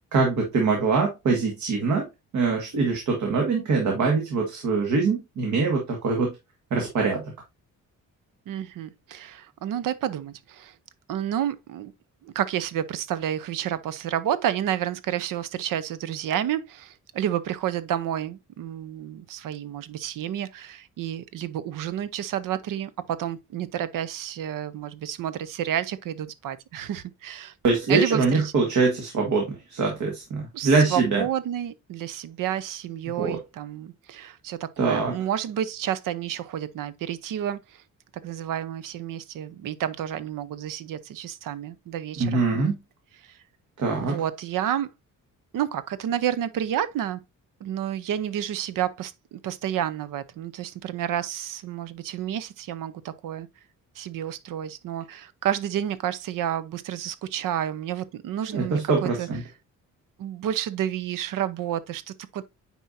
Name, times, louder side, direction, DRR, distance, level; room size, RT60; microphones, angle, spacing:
voice 1, 0.1-2.1 2.3-6.3 6.7-7.3 27.6-31.2 33.2-33.4 34.8-35.2 42.2-42.8 43.8-44.2 58.5-59.4, right 4 dB, 65° right, 1.8 m, -23 dB
voice 2, 8.5-10.7 11.1-11.9 12.2-27.5 27.9-28.5 30.5-37.8 38.2-42.4 44.0-44.9 45.5-47.2 47.6-53.5 54.0-59.3 60.2-62.4, right 10 dB, 85° right, 0.8 m, -30 dB
9.2 x 4.5 x 2.6 m
cardioid pair, 155°, 32 cm